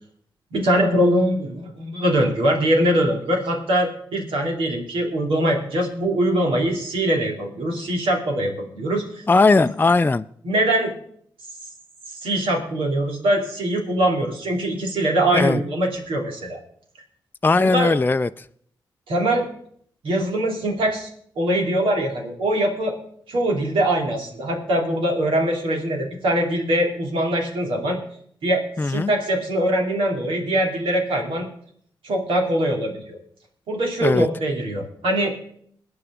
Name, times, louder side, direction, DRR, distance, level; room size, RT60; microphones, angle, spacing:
voice 1, 0.5-9.2 10.4-10.9 12.2-16.6 17.6-17.9 19.1-19.5 20.0-21.1 21.4-23.0 23.3-28.0 28.4-31.5 32.0-33.2 33.7-35.3, right 1 dB, 80° right, 3.0 m, -22 dB
voice 2, 9.3-10.3 15.3-15.6 17.4-18.4 28.8-29.1 34.0-34.3, left 3 dB, 20° left, 0.5 m, -18 dB
21.5 x 9.7 x 3.7 m
supercardioid pair, 40°, 9 cm